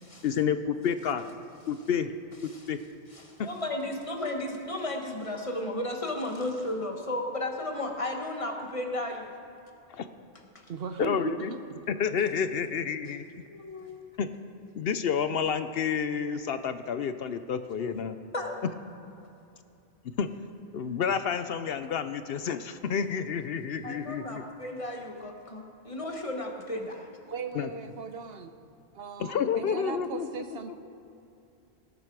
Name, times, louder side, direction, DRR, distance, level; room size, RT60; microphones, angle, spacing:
voice 1, 0.2-1.2 1.7-2.1 2.7-2.8 3.4-3.5 9.9-10.1 11.0-11.5 11.9-13.2 14.2-14.3 14.7-18.2 20.2-20.3 20.7-24.4 27.5-27.7 29.2-30.7, left 7 dB, 70° left, 10 dB, 0.8 m, -29 dB
voice 2, 3.1-9.3 10.5-10.7 13.5-14.1 18.3-18.6 23.8-27.2, left 1 dB, 30° left, 2 dB, 1.5 m, -34 dB
voice 3, 10.7-11.8 27.3-28.5 28.9-30.7, right 6 dB, 70° right, 9 dB, 1.0 m, -38 dB
18.5 x 11.0 x 4.7 m, 2.7 s
omnidirectional pair, 1.1 m